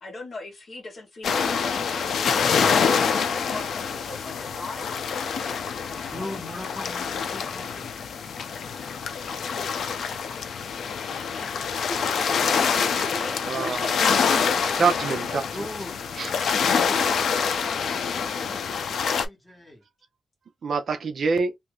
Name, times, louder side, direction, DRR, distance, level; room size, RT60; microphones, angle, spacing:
voice 1, 0.0-6.1 12.6-14.2 15.9-16.0, left 2 dB, 45° left, 1.1 m, -40 dB
sound 1, 1.2-19.3, left 6 dB, 80° left, 0.5 m, -26 dB
voice 2, 6.1-7.9 15.5-19.8, left 1 dB, 5° left, 1.6 m, -41 dB
voice 3, 12.5-13.1 13.5-13.9 14.8-15.6 16.2-16.5 17.1-17.2 20.6-21.5, right 4 dB, 55° right, 0.5 m, -27 dB
2.7 x 2.5 x 3.1 m
wide cardioid pair, 170°, 0 cm